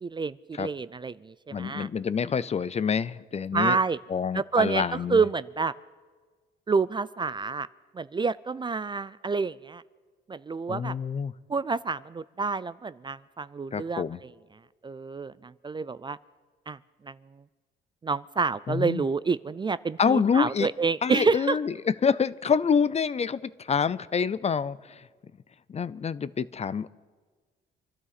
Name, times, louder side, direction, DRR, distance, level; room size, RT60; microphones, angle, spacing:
voice 1, 0.0-1.9 3.5-4.0 4.3-5.7 6.7-7.7 7.9-9.8 10.3-10.9 11.5-14.0 14.8-16.2 16.7-16.8 17.0-17.2 18.0-21.6, right 4 dB, 25° right, 17 dB, 0.4 m, -28 dB
voice 2, 1.5-3.8 4.1-5.2 10.7-11.3 13.7-14.2 18.7-19.0 20.0-20.7 21.0-21.7 22.0-25.1 25.7-26.9, left 6 dB, 35° left, 18 dB, 0.5 m, -27 dB
25.5 x 12.5 x 4.1 m, 1.4 s
cardioid pair, 90°, 20 cm